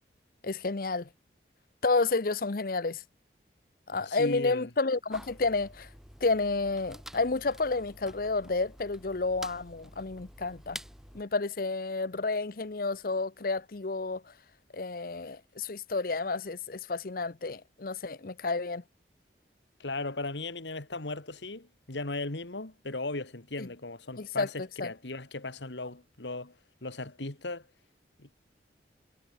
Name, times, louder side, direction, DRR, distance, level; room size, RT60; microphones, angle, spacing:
voice 1, 0.4-1.1 1.8-3.0 3.9-5.9 6.2-10.8 11.1-14.2 14.7-18.8 23.6-23.7 24.2-24.5 24.8-24.9, left 3 dB, 55° left, 0.8 m, -30 dB
voice 2, 4.0-4.7 19.8-26.6 26.8-27.7 28.2-28.4, left 2 dB, 85° left, 2.2 m, -37 dB
sound 1, 5.1-11.2, equal, 5° right, 3.1 m, -48 dB
head